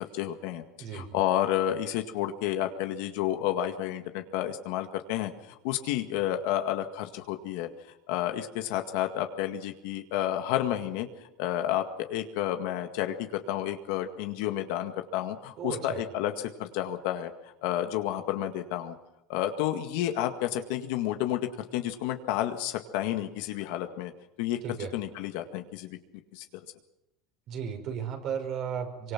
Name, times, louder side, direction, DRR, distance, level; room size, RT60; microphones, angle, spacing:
voice 1, 0.0-0.6 0.9-7.7 8.1-11.1 11.4-17.3 17.6-19.0 19.3-24.1 24.4-24.6 24.9-26.0 26.3-26.5, left 12 dB, 75° left, 6 dB, 1.9 m, -30 dB
voice 2, 15.6-16.0 24.6-24.9 27.5-29.1, right 7 dB, 55° right, 4 dB, 5.5 m, -34 dB
24.5 x 24.0 x 6.0 m, 0.89 s
supercardioid pair, 125°, 0 cm